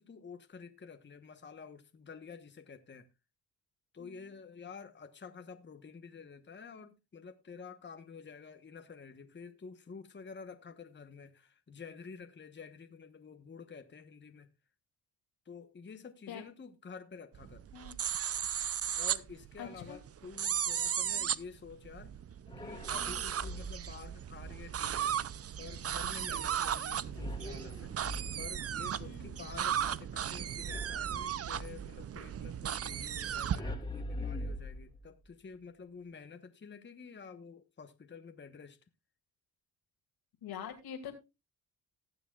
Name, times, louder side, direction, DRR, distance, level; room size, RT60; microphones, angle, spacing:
voice 1, 0.0-3.1 3.9-14.5 15.4-17.6 19.0-22.2 22.6-27.9 28.4-38.8, left 5 dB, 30° left, 1.2 m, -50 dB
sound 1, 17.3-33.6, right 9 dB, 40° right, 0.6 m, -36 dB
voice 2, 19.6-20.0 21.1-21.3 29.0-29.3 40.4-41.1, left 8 dB, 80° left, 2.5 m, -44 dB
sound 2, 22.5-24.0 27.1-28.7 30.6-31.9 33.6-35.3, left 1 dB, 10° left, 2.4 m, -42 dB
19.0 x 7.0 x 2.4 m
cardioid pair, 75°, 38 cm